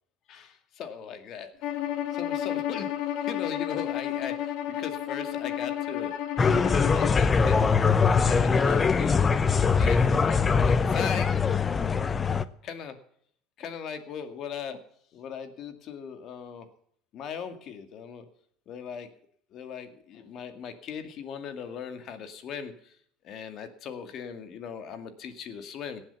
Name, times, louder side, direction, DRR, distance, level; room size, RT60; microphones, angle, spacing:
voice 1, 0.3-1.5 2.1-6.1 6.9-7.8 8.2-9.2 9.5-11.3 12.6-13.0 13.6-14.8 15.1-16.7 17.1-18.3 18.7-19.1 19.5-22.9 23.2-26.0, left 7 dB, 50° left, 8 dB, 2.2 m, -39 dB
Bowed string instrument, 1.6-7.2, left 11 dB, 65° left, 1.5 m, -32 dB
sound 1, 6.4-12.4, left 5 dB, 20° left, 0.7 m, -22 dB
18.0 x 8.0 x 6.9 m, 0.64 s
cardioid pair, 135°, 0 cm